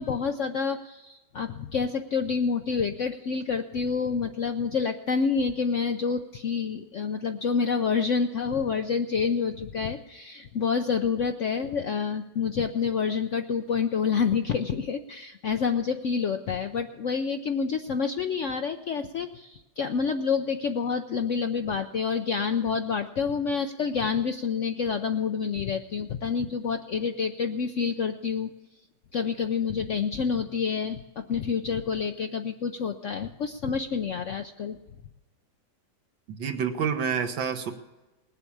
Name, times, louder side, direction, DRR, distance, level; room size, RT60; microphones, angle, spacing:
voice 1, 0.0-28.5 29.1-34.8, left 6 dB, 70° left, 7 dB, 0.7 m, -28 dB
voice 2, 36.4-37.7, right 7 dB, 85° right, 7 dB, 1.9 m, -28 dB
19.5 x 8.1 x 8.5 m, 1.1 s
omnidirectional pair, 2.0 m